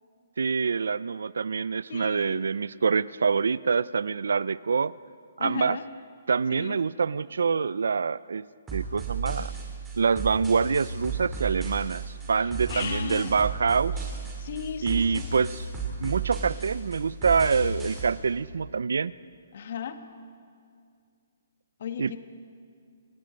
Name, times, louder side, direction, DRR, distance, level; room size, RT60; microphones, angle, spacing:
voice 1, 0.4-4.9 5.4-5.8 6.3-8.4 8.7-9.5 10.0-14.1 14.8-15.7 16.0-19.1 22.0-22.2, right 5 dB, 80° right, 20 dB, 0.4 m, -26 dB
voice 2, 1.9-2.4 5.4-5.8 6.5-6.8 12.4-13.4 14.4-15.2 19.5-20.0 21.8-22.2, left 8 dB, 60° left, 8 dB, 1.8 m, -36 dB
sound 1, 8.7-18.1, right 4 dB, 10° right, 6.3 m, -34 dB
29.5 x 19.0 x 5.3 m, 2.2 s
hypercardioid pair, 150°, 0 cm